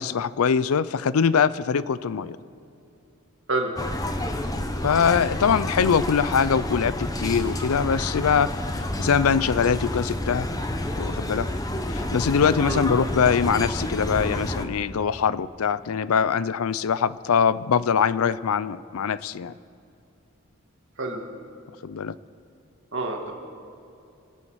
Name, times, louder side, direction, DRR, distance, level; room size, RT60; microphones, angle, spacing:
voice 1, 0.0-2.4 4.8-8.5 8.7-10.5 11.0-11.5 11.9-19.5 21.8-22.1, left 6 dB, 80° left, 17 dB, 0.5 m, -23 dB
sound 1, 3.8-14.6, left 1 dB, 15° left, 0.8 m, -29 dB
voice 2, 22.9-23.3, right 2 dB, 55° right, 2 dB, 1.9 m, -27 dB
25.0 x 8.9 x 6.3 m, 2.6 s
head